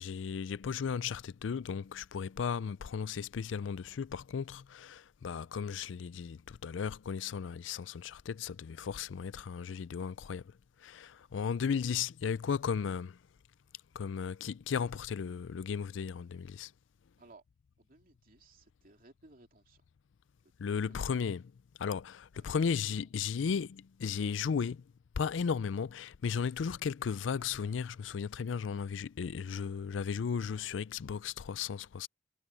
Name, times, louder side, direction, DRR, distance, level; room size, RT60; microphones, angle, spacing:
voice 1, 0.0-10.5 10.8-13.2 13.9-16.7 20.6-21.5 21.8-24.9 25.2-32.1, left 6 dB, 85° left, 0.4 m, -35 dB
voice 2, 17.8-19.8 20.4-20.5 20.9-21.2 22.4-23.0, right 2 dB, 50° right, 3.0 m, -60 dB
head